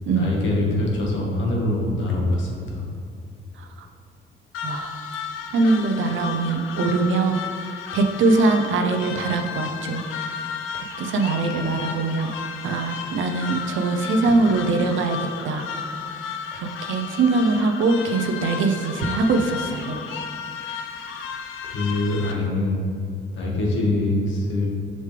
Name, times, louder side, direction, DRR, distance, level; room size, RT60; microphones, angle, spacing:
voice 1, 0.1-2.8 14.2-14.3 21.7-22.8 23.3-24.7, left 2 dB, 70° left, -2 dB, 1.6 m, -24 dB
sound 1, 4.5-22.3, left 6 dB, 90° left, 0.6 m, -33 dB
voice 2, 4.6-4.9 5.5-7.4 7.9-10.0 10.7-12.4 12.6-15.2 15.4-15.7 16.5-20.0, right 3 dB, 75° right, 5 dB, 0.7 m, -22 dB
6.6 x 5.4 x 3.4 m, 2.3 s
cardioid pair, 90°, 20 cm